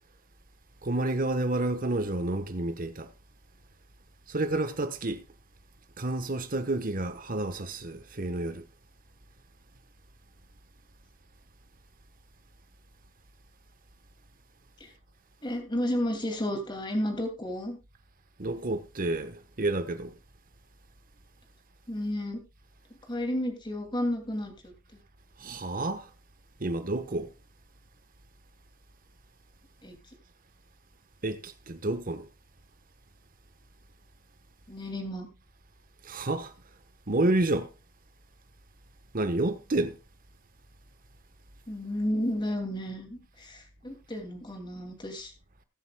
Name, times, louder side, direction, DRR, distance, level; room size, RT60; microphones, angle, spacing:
voice 1, 0.8-3.1 4.3-5.2 6.0-8.7 18.4-20.1 25.4-26.1 26.6-27.3 31.2-32.3 36.0-36.5 37.1-37.7 39.1-40.0, right 2 dB, 40° right, 1.1 m, -30 dB
voice 2, 15.4-17.8 21.9-22.4 23.1-24.5 29.8-29.9 34.7-35.3 41.7-45.3, left 1 dB, 20° left, 2.5 m, -32 dB
21.0 x 8.1 x 2.3 m
head